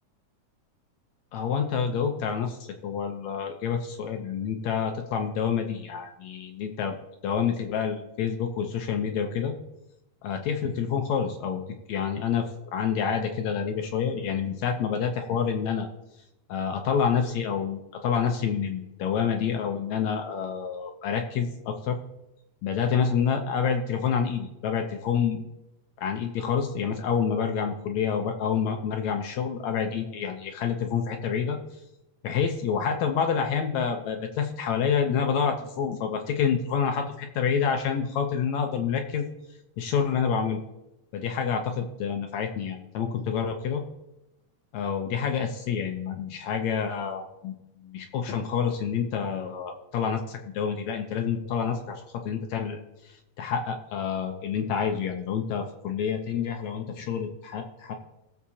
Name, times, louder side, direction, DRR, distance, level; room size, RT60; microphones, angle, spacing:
voice 1, 1.3-7.0 7.2-9.6 10.2-11.6 11.9-15.9 16.5-22.0 22.6-25.4 26.0-31.6 32.2-39.3 39.8-40.6 41.1-43.8 44.7-47.5 47.8-52.8 53.0-57.9, left 7 dB, 70° left, 4 dB, 1.9 m, -28 dB
20.5 x 7.3 x 2.8 m, 0.90 s
omnidirectional pair, 3.7 m